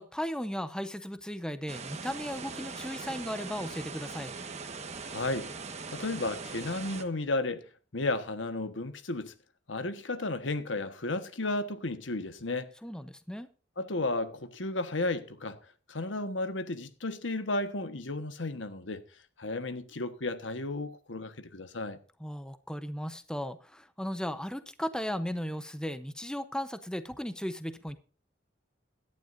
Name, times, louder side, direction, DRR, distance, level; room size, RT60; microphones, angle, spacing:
voice 1, 0.0-4.3 12.8-13.5 22.2-28.0, equal, 5° left, 0.8 m, -36 dB
sound 1, 1.7-7.0, right 4 dB, 35° right, 1.4 m, -41 dB
voice 2, 5.1-5.5 5.9-7.7 7.9-9.3 9.7-12.7 13.8-15.6 15.9-19.0 19.4-22.0, left 2 dB, 90° left, 1.4 m, -33 dB
17.5 x 11.5 x 2.6 m
head